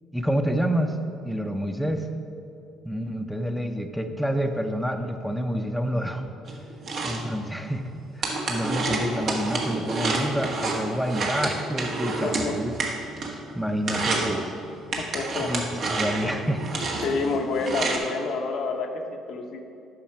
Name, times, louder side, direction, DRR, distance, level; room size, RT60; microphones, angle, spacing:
voice 1, 0.1-1.0 1.2-2.1 2.8-6.3 7.0-7.8 8.2-12.7 13.3-14.5 15.5-15.6 15.9-16.8, equal, ahead, 5 dB, 0.7 m, -28 dB
sound 1, 6.5-13.5 13.8-14.4 14.9-18.0, right 3 dB, 55° right, 1.3 m, -29 dB
voice 2, 12.2-12.6 15.0-15.5 17.0-19.6, left 4 dB, 60° left, 4 dB, 0.7 m, -28 dB
8.5 x 5.7 x 4.7 m, 2.6 s
hypercardioid pair, 55°, 0 cm